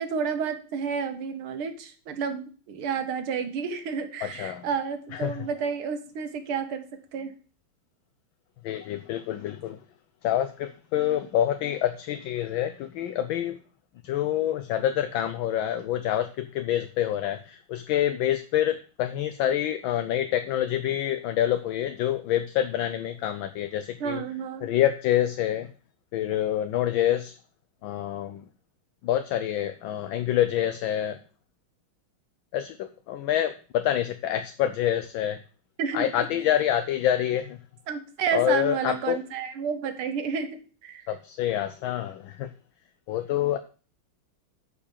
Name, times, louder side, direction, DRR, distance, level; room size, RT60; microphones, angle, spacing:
voice 1, 0.0-6.8 7.1-7.3 24.0-24.7 35.8-36.3 37.9-41.1, right 6 dB, 85° right, 8 dB, 2.1 m, -31 dB
voice 2, 4.2-4.7 5.1-5.4 8.6-9.8 10.2-13.6 14.0-24.2 24.6-25.7 26.1-27.4 27.8-28.4 29.0-31.2 32.5-35.4 35.9-37.6 38.3-39.2 41.1-42.5 43.1-43.6, left 11 dB, 75° left, 9 dB, 1.4 m, -27 dB
8.6 x 4.8 x 7.3 m, 0.37 s
omnidirectional pair, 2.3 m